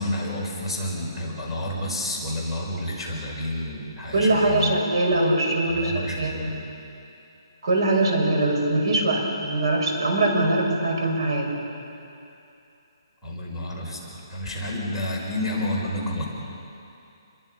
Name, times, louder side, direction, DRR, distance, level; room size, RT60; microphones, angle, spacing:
voice 1, 0.0-4.8 5.1-5.2 5.7-6.7 13.2-16.2, left 1 dB, ahead, -9 dB, 5.2 m, -30 dB
voice 2, 4.1-6.5 7.6-11.5, right 2 dB, 70° right, 0 dB, 6.3 m, -22 dB
29.5 x 23.0 x 5.7 m, 2.7 s
hypercardioid pair, 170°, 3 cm